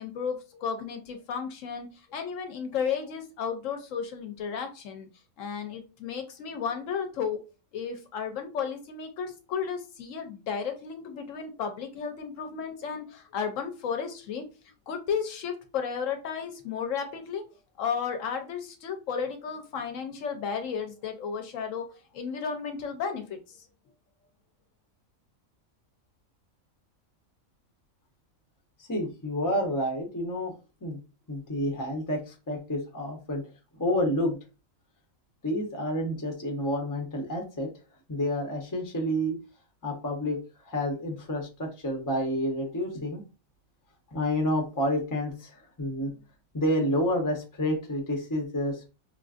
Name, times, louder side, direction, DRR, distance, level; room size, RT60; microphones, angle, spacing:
voice 1, 0.0-5.1 5.4-7.5 7.7-14.5 14.9-17.4 17.8-23.6, left 6 dB, 70° left, 6 dB, 0.9 m, -33 dB
voice 2, 28.8-30.5 30.8-31.0 31.3-33.4 33.7-34.4 35.4-37.7 38.1-39.4 39.8-43.2 44.1-46.1 46.5-48.8, equal, 20° left, 2 dB, 0.6 m, -29 dB
4.0 x 2.4 x 2.4 m, 0.31 s
omnidirectional pair, 1.4 m